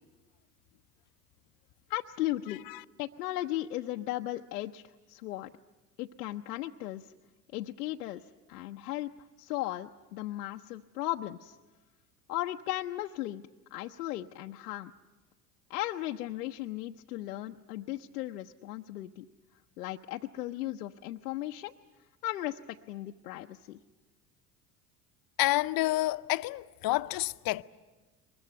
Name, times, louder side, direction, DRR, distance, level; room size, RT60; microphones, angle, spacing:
voice 1, 1.9-2.6 3.0-4.8 5.1-5.5 6.0-7.1 7.5-8.2 8.5-9.1 9.4-11.6 12.3-13.4 13.7-14.9 15.7-19.3 19.8-21.7 22.2-23.8, left 15 dB, 85° left, 0.7 m, -36 dB
voice 2, 25.4-27.6, left 18 dB, 50° left, 0.8 m, -29 dB
23.5 x 21.5 x 9.3 m
hypercardioid pair, 80°, 46 cm